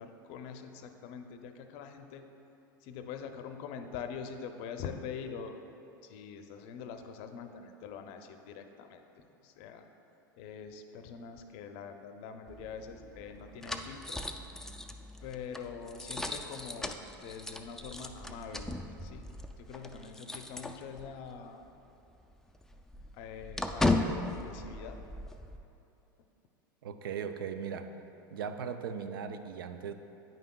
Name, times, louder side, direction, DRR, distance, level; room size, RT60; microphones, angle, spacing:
voice 1, 0.0-2.2 2.8-5.5 6.0-9.0 9.4-9.9 10.4-14.2 15.2-19.2 19.6-21.7 23.1-25.0, left 6 dB, 60° left, 7 dB, 0.5 m, -44 dB
sound 1, 12.5-21.3 21.6-21.8 22.1-25.6, left 2 dB, 5° left, 0.3 m, -37 dB
voice 2, 26.8-27.9 28.3-29.9, right 7 dB, 85° right, 9 dB, 0.4 m, -38 dB
9.0 x 5.6 x 2.3 m, 2.9 s
hypercardioid pair, 95°, 11 cm